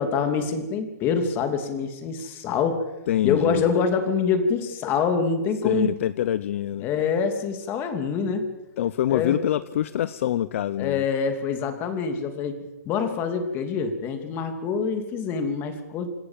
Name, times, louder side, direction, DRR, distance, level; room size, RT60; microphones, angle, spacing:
voice 1, 0.0-2.9 3.2-5.9 6.8-8.5 9.1-9.4 10.8-16.1, left 5 dB, 20° left, 7 dB, 2.7 m, -25 dB
voice 2, 3.1-3.7 5.6-6.9 8.8-11.0, left 11 dB, 50° left, 16 dB, 0.7 m, -25 dB
27.0 x 18.5 x 7.5 m, 1.0 s
hypercardioid pair, 165°, 9 cm